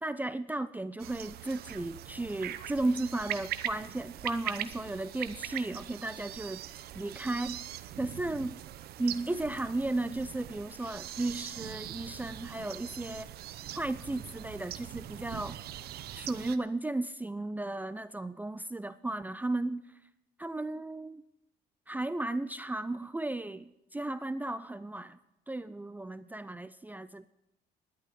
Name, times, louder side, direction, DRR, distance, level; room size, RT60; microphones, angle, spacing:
voice 1, 0.0-6.6 6.9-8.6 9.0-13.3 13.7-15.6 16.1-19.9 20.4-21.2 21.9-25.2 25.5-27.3, right 2 dB, 10° right, 13 dB, 0.5 m, -35 dB
sound 1, 1.0-16.6, right 12 dB, 70° right, 0.8 m, -42 dB
11.0 x 8.7 x 10.0 m, 0.87 s
cardioid pair, 110°, 17 cm